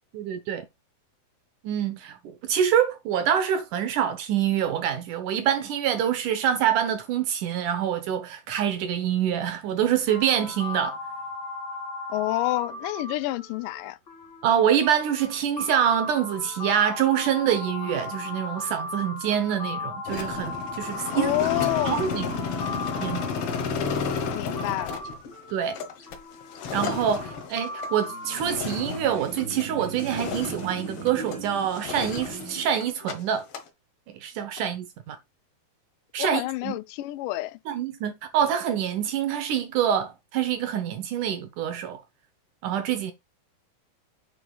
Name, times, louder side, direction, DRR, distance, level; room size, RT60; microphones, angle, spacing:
voice 1, 0.1-0.6 1.6-11.0 14.4-21.3 21.8-22.3 23.0-23.3 25.5-25.7 26.7-33.4 34.1-35.2 36.1-36.7 37.7-42.0 42.6-43.1, right 9 dB, 70° right, 2.2 m, -26 dB
sound 1, 10.1-23.9 24.6-28.4, left 2 dB, 40° left, 1.7 m, -36 dB
voice 2, 12.1-14.0 21.1-22.0 24.3-25.0 36.2-37.6, left 18 dB, 80° left, 2.0 m, -28 dB
sound 2, 20.1-29.7 30.0-31.4 31.7-33.1 33.4-33.7, left 5 dB, 60° left, 1.5 m, -32 dB
sound 3, 27.9-32.8, right 3 dB, 40° right, 1.7 m, -38 dB
9.1 x 5.9 x 2.3 m
omnidirectional pair, 4.2 m